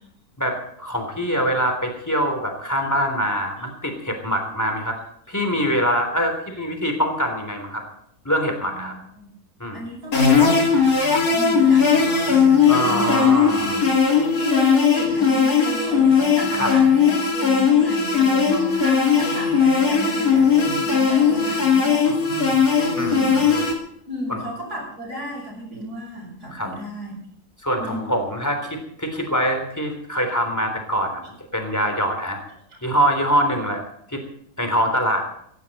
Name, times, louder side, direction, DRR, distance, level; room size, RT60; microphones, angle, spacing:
voice 1, 0.4-5.0 5.3-7.8 8.3-8.9 9.6-9.8 12.7-13.8 16.5-16.7 23.0-23.7 24.3-24.4 26.5-26.7 27.6-31.2 31.5-32.4 32.8-33.8 34.1-34.2 34.6-35.2, equal, 10° left, 4 dB, 3.5 m, -24 dB
voice 2, 8.6-9.3 9.7-13.9 14.3-22.7 23.0-23.5 24.1-27.2 27.8-28.0, equal, 85° right, -3 dB, 8.3 m, -33 dB
sound 1, 10.1-23.7, left 6 dB, 65° left, 3.7 m, -18 dB
16.0 x 16.0 x 4.3 m, 0.69 s
omnidirectional pair, 1.7 m